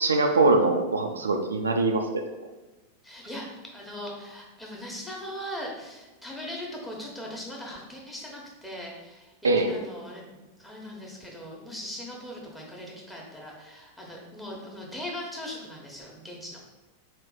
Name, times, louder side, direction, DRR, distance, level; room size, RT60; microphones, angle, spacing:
voice 1, 0.0-2.2 9.4-9.7, right 3 dB, 75° right, 4 dB, 0.4 m, -22 dB
voice 2, 3.0-9.3 9.7-16.6, equal, 5° left, -3 dB, 1.1 m, -39 dB
4.1 x 3.2 x 3.9 m, 1.1 s
figure-of-eight pair, 90°, 0 cm